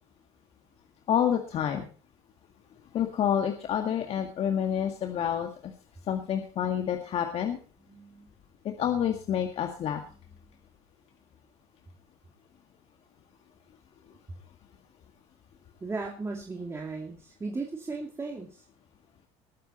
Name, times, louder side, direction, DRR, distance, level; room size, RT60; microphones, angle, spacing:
voice 1, 1.1-1.9 2.9-5.7 6.1-7.6 8.6-10.0, left 9 dB, 50° left, 4 dB, 2.0 m, -28 dB
voice 2, 7.8-8.3 15.8-18.6, right 3 dB, 20° right, 1 dB, 2.6 m, -37 dB
20.0 x 9.3 x 4.3 m, 0.39 s
supercardioid pair, 95°, 13 cm